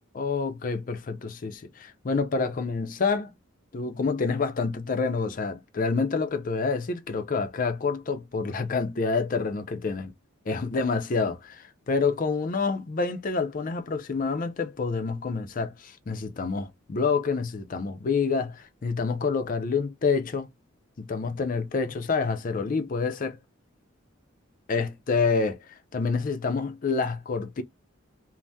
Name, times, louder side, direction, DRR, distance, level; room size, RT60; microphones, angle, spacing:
voice 1, 0.1-3.3 3.7-10.1 10.5-20.5 21.0-23.4 24.7-27.6, left 4 dB, 40° left, 0.4 m, -28 dB
3.4 x 2.0 x 2.6 m
head